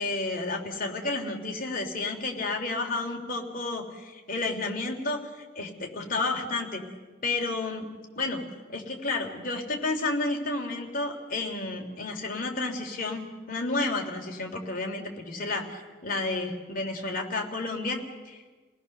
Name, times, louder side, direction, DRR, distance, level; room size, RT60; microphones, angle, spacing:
voice 1, 0.0-6.8 7.2-7.9 8.2-8.4 8.7-18.0 18.2-18.4, left 3 dB, 45° left, 2 dB, 3.3 m, -31 dB
30.0 x 19.0 x 6.7 m, 1.3 s
head